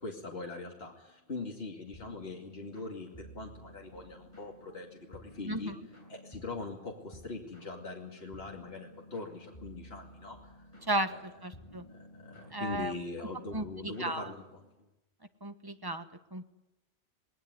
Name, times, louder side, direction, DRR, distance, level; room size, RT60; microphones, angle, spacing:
voice 1, 0.0-5.7 6.1-10.6 11.1-11.2 11.9-14.6, left 3 dB, 70° left, 0 dB, 2.7 m, -42 dB
sound 1, 1.9-14.7, equal, 30° left, 7.8 m, -53 dB
voice 2, 10.9-11.8 12.5-12.9 13.5-14.3 15.4-16.4, right 1 dB, 20° right, 8 dB, 1.2 m, -35 dB
20.0 x 18.5 x 9.5 m, 0.94 s
omnidirectional pair, 1.1 m